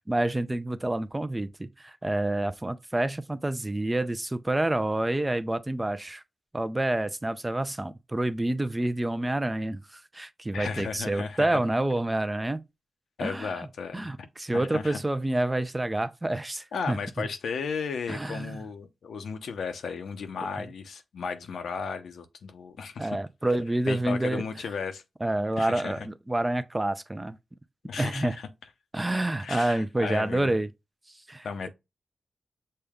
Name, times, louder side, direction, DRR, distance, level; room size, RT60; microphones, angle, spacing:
voice 1, 0.1-6.2 6.5-12.6 13.2-13.5 13.9-17.3 18.1-18.5 23.0-24.4 25.2-27.4 28.0-28.4 28.9-30.7 31.3-31.5, right 1 dB, 15° right, 0.4 m, -28 dB
voice 2, 10.5-11.6 13.2-14.1 14.5-15.0 16.7-23.2 23.9-25.0 25.6-26.1 27.8-28.5 29.4-30.5 31.4-31.7, left 5 dB, 90° left, 0.7 m, -35 dB
6.5 x 2.3 x 3.6 m
wide cardioid pair, 90°, 0 cm